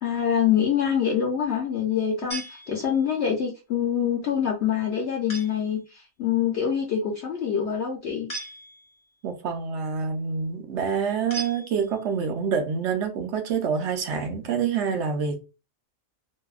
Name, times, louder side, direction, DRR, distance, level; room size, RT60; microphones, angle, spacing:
voice 1, 0.0-8.3, left 8 dB, 65° left, 0.7 m, -25 dB
sound 1, 2.3-3.2 5.3-5.8 8.3-9.1 11.3-12.2, right 2 dB, 40° left, 0.4 m, -38 dB
voice 2, 9.2-15.4, right 6 dB, 65° right, 0.8 m, -27 dB
2.7 x 2.1 x 2.3 m
omnidirectional pair, 1.4 m